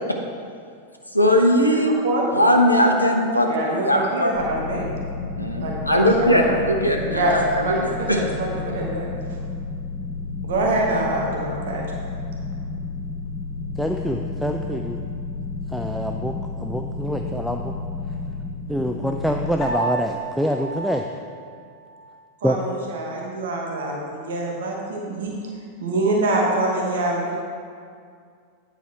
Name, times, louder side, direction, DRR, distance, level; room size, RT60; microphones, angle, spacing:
voice 1, 1.1-2.0 2.4-4.3 5.3-8.2, equal, 90° left, 2 dB, 0.7 m, -19 dB
voice 2, 3.5-4.8 5.6-6.5 7.1-7.4 7.6-9.1 10.4-11.8 22.4-25.3 25.8-27.3, right 2 dB, 60° right, -2 dB, 1.1 m, -25 dB
sound 1, 4.3-19.5, left 3 dB, 50° left, 1.6 m, -31 dB
voice 3, 13.8-15.0 15.7-17.7 18.7-21.0 22.4-22.6, equal, ahead, 3 dB, 0.3 m, -25 dB
Piano, 19.6-22.1, right 3 dB, 35° left, 1.3 m, -32 dB
9.1 x 4.9 x 4.5 m, 2.2 s
figure-of-eight pair, 90°, 0 cm